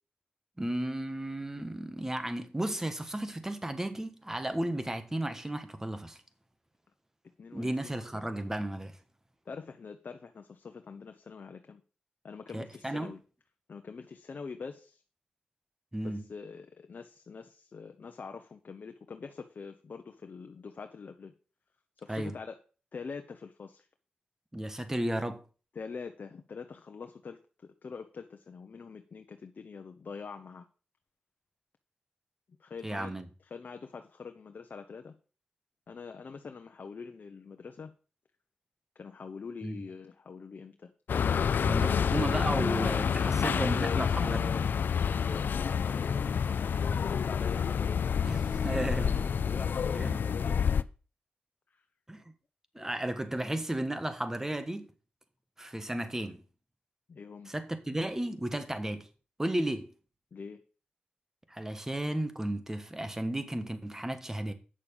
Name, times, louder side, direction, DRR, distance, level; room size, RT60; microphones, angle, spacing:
voice 1, 0.6-6.2 7.5-9.0 12.5-13.1 15.9-16.2 22.1-22.3 24.5-25.4 32.8-33.3 39.6-39.8 41.7-44.5 48.2-49.3 49.9-50.2 52.1-52.2 52.7-54.9 55.6-56.4 57.5-59.1 59.4-59.9 61.5-64.5, right 1 dB, 15° right, 1.3 m, -34 dB
voice 2, 7.4-7.9 9.5-11.8 12.2-13.2 13.7-15.0 16.0-21.3 22.0-22.6 22.9-23.9 25.7-30.7 32.6-33.1 33.5-35.1 35.9-37.9 38.9-40.9 41.9-42.1 43.8-44.6 44.9-48.7 49.5-50.7 51.7-51.8 52.8-52.9 57.1-57.5 60.3-60.6, left 5 dB, 55° left, 0.9 m, -44 dB
sound 1, 41.1-50.8, left 7 dB, 70° left, 0.4 m, -28 dB
8.8 x 6.6 x 5.3 m
wide cardioid pair, 100°, 3 cm